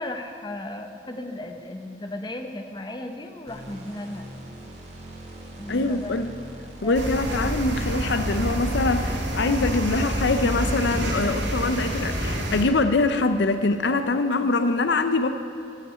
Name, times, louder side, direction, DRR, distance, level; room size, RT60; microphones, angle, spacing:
voice 1, 0.0-4.2 5.6-6.2 6.8-7.4, left 1 dB, 20° left, 5 dB, 0.9 m, -35 dB
sound 1, 3.5-9.2, right 1 dB, 35° right, 1.9 m, -42 dB
voice 2, 5.7-6.3 6.8-15.3, left 3 dB, 65° left, 9 dB, 0.6 m, -23 dB
Siena Morning Late, 6.9-12.6, right 1 dB, 75° right, 2.0 m, -27 dB
14.5 x 5.9 x 9.6 m, 2.8 s
head